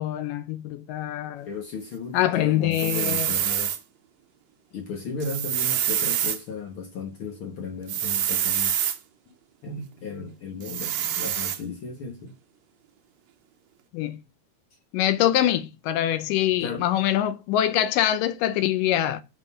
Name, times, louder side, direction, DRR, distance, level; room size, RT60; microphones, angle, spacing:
voice 1, 0.0-1.5 2.1-3.3 13.9-14.2 14.9-19.2, left 12 dB, 85° left, 2.4 m, -24 dB
voice 2, 1.4-3.8 4.7-8.8 9.6-12.3 16.6-16.9, left 4 dB, 60° left, 1.4 m, -35 dB
sound 1, 2.7-3.8 5.2-6.4 7.9-9.0 10.6-11.6, right 10 dB, 70° right, 2.0 m, -26 dB
6.0 x 5.7 x 5.5 m
omnidirectional pair, 3.8 m